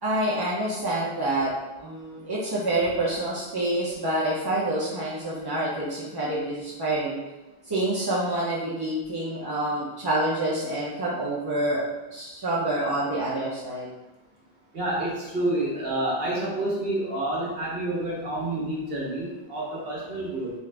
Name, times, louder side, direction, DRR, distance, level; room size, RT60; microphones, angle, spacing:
voice 1, 0.0-1.5 1.8-7.2 7.6-11.8 12.1-13.9, right 1 dB, 30° right, -8 dB, 0.4 m, -27 dB
voice 2, 14.7-20.5, right 1 dB, 60° right, -5 dB, 1.2 m, -28 dB
3.8 x 2.4 x 3.3 m, 1.1 s
omnidirectional pair, 1.1 m